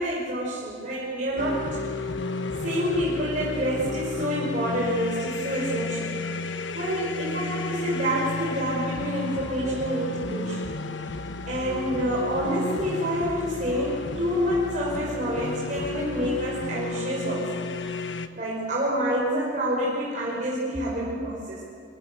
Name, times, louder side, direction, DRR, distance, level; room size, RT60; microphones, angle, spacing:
voice 1, 0.0-1.6 1.9-2.1 2.6-6.2 6.5-10.7 11.5-17.6 18.3-21.6, equal, 40° right, -6 dB, 5.7 m, -28 dB
sound 1, 1.4-18.3, left 3 dB, 75° left, 1.2 m, -32 dB
25.5 x 24.5 x 8.1 m, 2.1 s
head